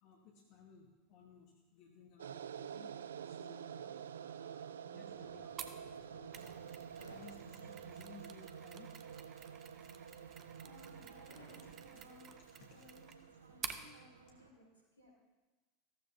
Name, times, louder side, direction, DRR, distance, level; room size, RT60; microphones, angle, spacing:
voice 1, 0.0-3.0 3.2-6.5 7.1-8.9 12.6-12.9 13.5-13.6, left 5 dB, 50° left, 1 dB, 1.3 m, -60 dB
sound 1, 2.2-14.5, right 8 dB, 70° right, 0.3 m, -49 dB
sound 2, 5.1-14.5, equal, 85° right, 2.3 m, -63 dB
Mechanisms, 5.6-13.9, right 8 dB, 35° right, 0.9 m, -51 dB
voice 2, 10.5-12.3 12.7-15.1, equal, 90° left, -3 dB, 3.8 m, -61 dB
14.5 x 14.0 x 2.7 m, 1.2 s
figure-of-eight pair, 80°, 0 cm